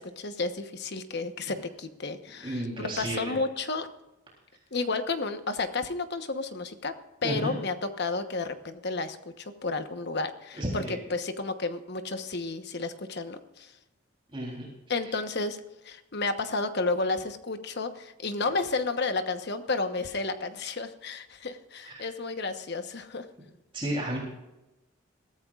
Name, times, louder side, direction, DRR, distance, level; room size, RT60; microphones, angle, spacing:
voice 1, 0.0-3.9 4.7-7.0 7.2-13.7 14.9-15.6 15.8-23.3, left 3 dB, 55° left, 8 dB, 1.1 m, -32 dB
voice 2, 2.4-3.3 7.2-7.5 10.6-11.0 14.3-14.7 21.8-22.1 23.7-24.2, right 1 dB, 25° right, -4 dB, 3.6 m, -32 dB
22.0 x 14.0 x 2.5 m, 0.99 s
head